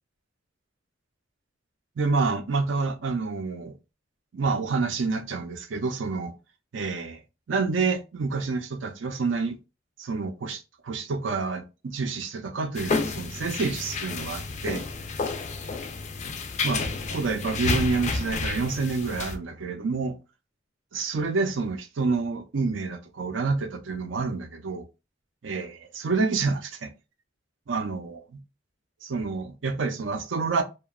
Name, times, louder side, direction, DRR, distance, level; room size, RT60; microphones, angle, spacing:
voice 1, 2.0-3.7 4.3-6.3 6.7-7.2 7.5-9.5 10.0-14.9 16.6-16.8 17.1-20.1 20.9-24.9 25.4-26.9 27.7-28.4 29.0-30.6, right 4 dB, 75° right, 0.5 m, -28 dB
sound 1, 12.8-19.4, left 4 dB, 40° left, 0.4 m, -30 dB
2.8 x 2.2 x 2.3 m
head